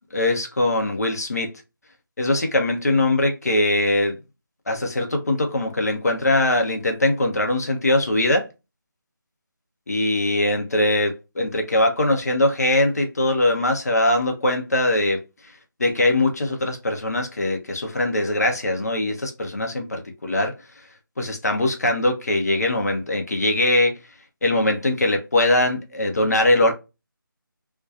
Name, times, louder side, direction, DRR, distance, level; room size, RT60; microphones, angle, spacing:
voice 1, 0.1-1.5 2.2-4.2 4.7-8.5 9.9-15.5 15.8-20.5 21.2-23.9 24.4-26.7, left 1 dB, 50° left, 0.6 m, -21 dB
2.6 x 2.2 x 2.4 m
figure-of-eight pair, 160°, 12 cm